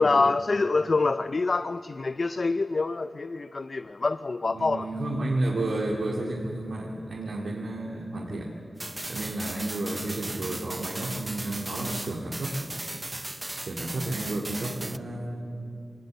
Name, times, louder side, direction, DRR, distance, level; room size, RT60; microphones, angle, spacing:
voice 1, 0.0-4.9, left 3 dB, 55° left, 12 dB, 0.5 m, -25 dB
voice 2, 4.5-8.5 9.1-12.6 13.6-15.7, right 2 dB, 80° right, -3 dB, 2.4 m, -31 dB
sound 1, 8.8-15.0, right 1 dB, 20° right, 0.6 m, -37 dB
23.0 x 19.5 x 7.8 m, 2.7 s
wide cardioid pair, 70°, 0 cm